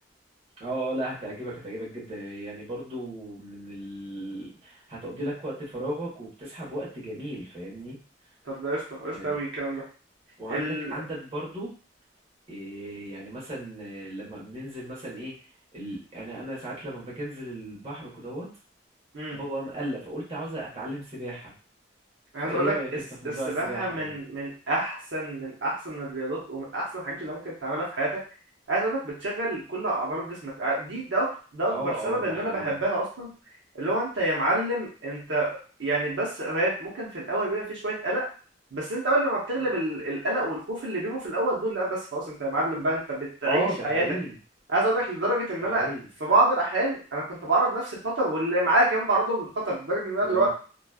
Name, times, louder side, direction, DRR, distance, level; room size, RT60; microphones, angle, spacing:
voice 1, 0.6-8.0 9.1-9.4 9.7-9.8 10.4-11.7 12.5-15.3 15.7-18.5 19.3-21.5 22.4-24.1 31.7-32.7 43.4-44.3 45.7-46.1 50.2-50.5, right 1 dB, 35° right, -6 dB, 1.2 m, -35 dB
voice 2, 8.5-9.8 10.5-10.9 19.1-19.4 22.3-22.7 23.2-28.2 28.7-33.3 33.7-35.5 35.8-38.3 38.7-44.0 44.7-45.9 46.2-50.5, right 1 dB, 70° right, -5 dB, 0.9 m, -27 dB
3.1 x 2.3 x 2.3 m, 0.39 s
head